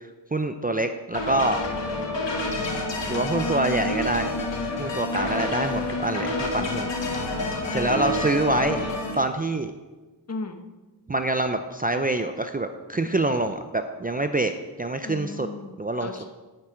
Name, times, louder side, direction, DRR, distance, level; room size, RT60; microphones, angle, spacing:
voice 1, 0.3-1.6 3.1-4.3 4.8-6.9 7.7-8.8 9.2-9.7 11.1-14.5 14.8-15.5 15.8-16.1, right 2 dB, 20° right, 8 dB, 0.5 m, -25 dB
sound 1, 1.1-9.2, left 2 dB, 85° left, 1.9 m, -28 dB
voice 2, 7.7-8.1 8.5-8.9 10.3-10.6 15.0-16.3, left 3 dB, 35° left, 5 dB, 1.1 m, -36 dB
9.9 x 9.9 x 4.5 m, 1.2 s
wide cardioid pair, 105°, 42 cm